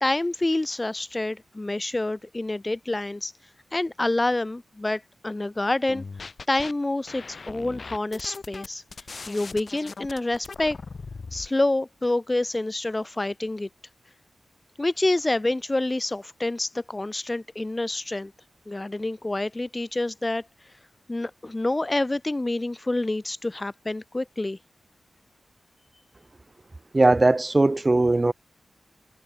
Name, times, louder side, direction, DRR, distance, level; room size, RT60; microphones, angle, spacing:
voice 1, 0.0-3.3 3.7-6.0 6.5-8.8 9.3-10.8 11.3-13.7 14.8-18.3 18.7-20.4 21.1-24.6, left 2 dB, 20° left, 0.3 m, -27 dB
sound 1, 5.9-6.7 7.1-11.5, left 4 dB, 50° left, 2.9 m, -39 dB
voice 2, 26.9-28.3, right 2 dB, 25° right, 0.7 m, -19 dB
wide cardioid pair, 85°, 0 cm